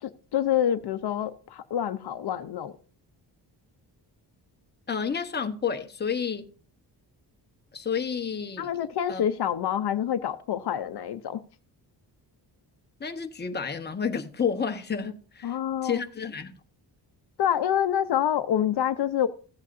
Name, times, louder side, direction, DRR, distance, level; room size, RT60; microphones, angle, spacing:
voice 1, 0.0-2.7 8.6-11.4 15.4-16.0 17.4-19.3, left 10 dB, 65° left, 0.7 m, -27 dB
voice 2, 4.9-6.5 7.7-8.7 9.1-9.3 13.0-15.6 15.8-16.6, left 6 dB, 25° left, 1.0 m, -30 dB
15.5 x 8.2 x 2.6 m
wide cardioid pair, 150°, 42 cm